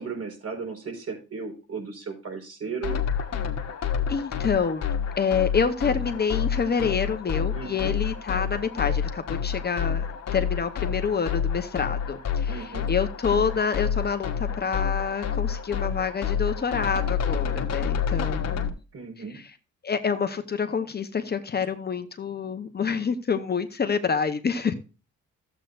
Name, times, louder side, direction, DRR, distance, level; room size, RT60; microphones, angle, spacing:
voice 1, 0.0-3.0 7.5-7.9 12.5-12.9 18.9-19.4, right 5 dB, 50° right, 3 dB, 4.7 m, -35 dB
sound 1, 2.8-18.7, left 7 dB, 60° left, 1.5 m, -28 dB
voice 2, 4.1-10.0 10.3-18.7 19.3-19.5 19.8-24.7, left 6 dB, 35° left, 8 dB, 0.9 m, -27 dB
13.0 x 8.0 x 2.6 m, 0.32 s
cardioid pair, 90°, 30 cm